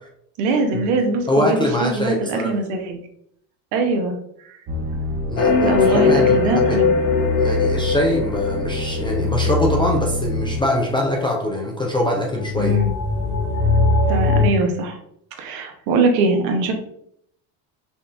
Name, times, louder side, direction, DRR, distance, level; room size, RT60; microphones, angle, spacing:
voice 1, 0.4-3.0 3.7-4.2 4.5-4.6 5.6-7.0 12.6-12.9 14.1-15.0 15.4-16.7, right 3 dB, 75° right, 4 dB, 1.0 m, -22 dB
voice 2, 1.3-2.5 5.3-6.8 7.4-12.8, left 1 dB, 10° left, 0 dB, 0.3 m, -23 dB
sound 1, 4.7-10.6, left 2 dB, 35° right, 0.9 m, -25 dB
sound 2, 5.4-9.7 12.3-14.5, left 4 dB, 55° left, 0.7 m, -20 dB
5.4 x 2.3 x 2.4 m, 0.71 s
supercardioid pair, 95°, 46 cm